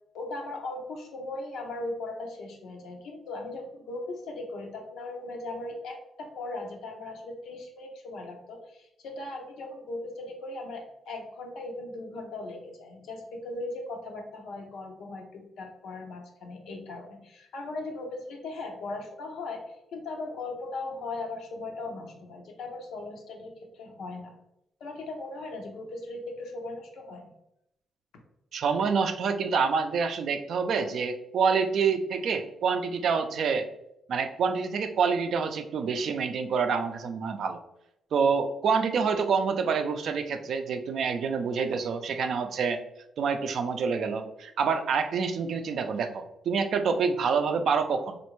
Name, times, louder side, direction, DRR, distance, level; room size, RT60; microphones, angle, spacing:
voice 1, 0.1-24.4 24.8-27.3, left 2 dB, 85° left, 2 dB, 0.7 m, -38 dB
voice 2, 28.5-33.7 34.1-37.6 38.1-42.8 43.2-48.2, right 5 dB, 70° right, 7 dB, 0.4 m, -27 dB
3.3 x 2.5 x 3.0 m, 0.81 s
cardioid pair, 85°, 0 cm